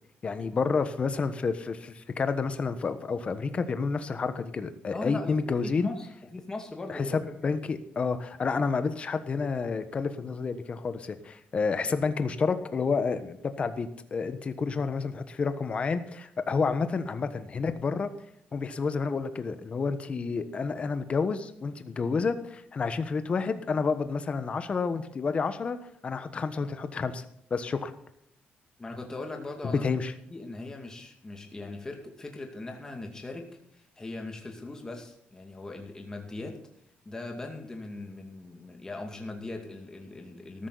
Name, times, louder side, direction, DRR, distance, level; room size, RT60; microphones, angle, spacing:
voice 1, 0.2-5.9 6.9-18.1 18.5-25.8 26.0-27.2 27.5-27.9 29.6-30.1, left 4 dB, 35° left, 10 dB, 1.3 m, -29 dB
voice 2, 4.9-7.3 28.8-29.8 30.3-33.5 33.7-36.6 37.0-40.7, left 2 dB, 15° left, 2 dB, 2.3 m, -40 dB
14.0 x 13.0 x 4.1 m, 0.73 s
cardioid pair, 140°, 4 cm